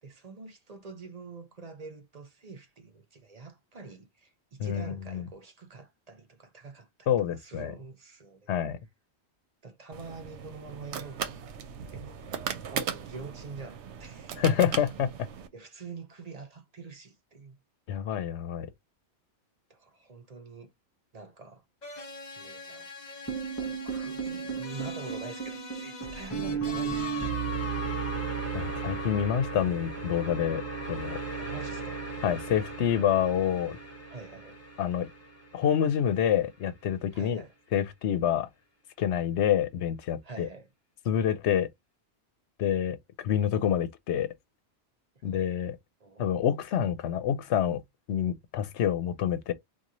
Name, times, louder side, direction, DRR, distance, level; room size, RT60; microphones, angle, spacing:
voice 1, 0.0-8.6 9.6-11.5 11.9-14.4 15.5-17.6 19.7-20.7 21.1-21.6 22.4-22.9 23.6-27.4 31.4-32.0 34.1-34.6 37.1-37.5 40.2-40.7 45.2-45.6 46.0-46.3, right 4 dB, 40° right, 0.7 m, -46 dB
voice 2, 4.6-5.2 7.1-7.7 8.5-8.8 14.4-15.1 17.9-18.7 28.5-30.6 30.9-31.2 32.2-33.8 34.8-35.1 35.5-37.4 37.7-38.5 39.0-40.5 41.1-41.7 42.6-44.3 45.2-45.8 46.2-47.8 48.1-49.5, left 9 dB, 80° left, 0.9 m, -27 dB
sound 1, 9.9-15.5, right 7 dB, 80° right, 0.9 m, -38 dB
sound 2, 21.8-27.3, left 4 dB, 40° left, 1.0 m, -43 dB
sound 3, 23.3-35.5, right 5 dB, 15° left, 0.8 m, -35 dB
3.0 x 2.3 x 3.8 m
omnidirectional pair, 1.2 m